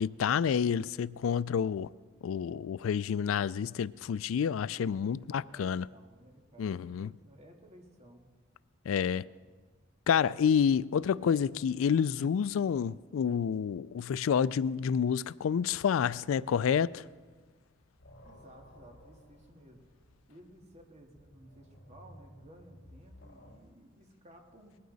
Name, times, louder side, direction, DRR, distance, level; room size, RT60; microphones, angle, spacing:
voice 1, 0.0-1.9 2.2-5.9 6.6-7.1 8.9-9.2 10.1-17.1, left 7 dB, 90° left, 0.3 m, -29 dB
voice 2, 5.1-8.3 9.0-9.3 18.2-19.8 20.3-24.8, right 1 dB, 35° right, 2.0 m, -56 dB
sound 1, 17.3-17.4 17.7-23.6, equal, 55° left, 4.4 m, -56 dB
20.0 x 14.5 x 4.0 m
head